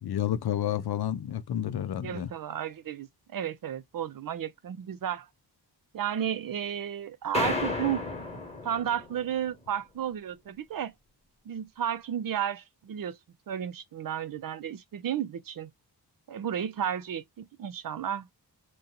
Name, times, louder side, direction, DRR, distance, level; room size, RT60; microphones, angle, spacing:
voice 1, 0.0-2.3, left 11 dB, 70° left, 0.5 m, -30 dB
voice 2, 2.0-5.3 5.9-8.0 8.6-10.9 11.5-13.2 13.5-15.7 16.3-18.3, right 9 dB, 55° right, 0.5 m, -33 dB
sound 1, 7.3-9.3, left 2 dB, 15° left, 1.2 m, -32 dB
2.8 x 2.2 x 3.8 m
wide cardioid pair, 145°, 40 cm